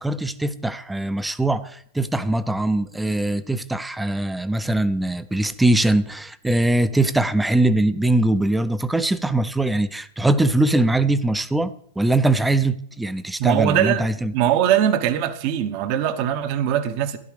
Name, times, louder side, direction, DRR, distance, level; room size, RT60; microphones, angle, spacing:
voice 1, 0.0-11.7 12.0-14.3, right 2 dB, 5° right, 0.6 m, -21 dB
voice 2, 13.4-14.0 14.3-17.2, right 10 dB, 50° right, 1.0 m, -21 dB
12.5 x 11.5 x 3.4 m
hypercardioid pair, 105°, 0 cm